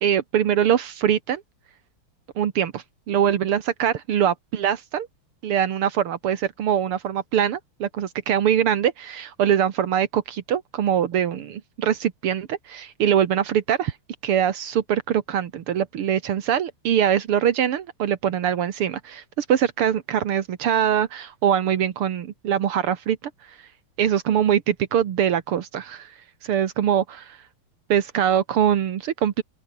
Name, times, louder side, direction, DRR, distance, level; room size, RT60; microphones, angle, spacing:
voice 1, 0.0-1.4 2.4-5.1 5.4-13.9 14.2-23.2 23.5-23.6 24.0-26.1 26.4-27.4 27.9-29.4, right 9 dB, 80° right, 2.3 m, -23 dB
open air
omnidirectional pair, 2.4 m